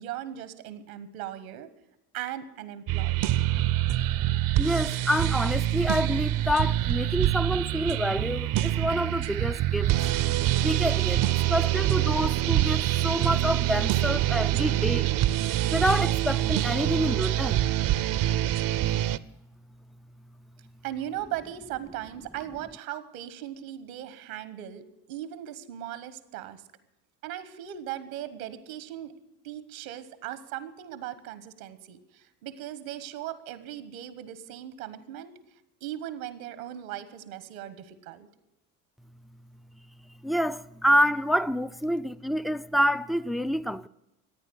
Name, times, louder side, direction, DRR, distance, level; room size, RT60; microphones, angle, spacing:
voice 1, 0.0-1.7 2.1-3.2 20.8-24.8 25.1-26.6 27.2-29.1 29.4-35.3 35.8-38.3, right 12 dB, 85° right, 1.3 m, -38 dB
sound 1, 2.9-19.2, right 13 dB, 55° right, 0.7 m, -25 dB
voice 2, 4.6-9.9 10.6-15.1 15.7-17.6 40.2-43.9, equal, ahead, 0.4 m, -27 dB
14.5 x 9.3 x 7.8 m
hypercardioid pair, 65°, 40 cm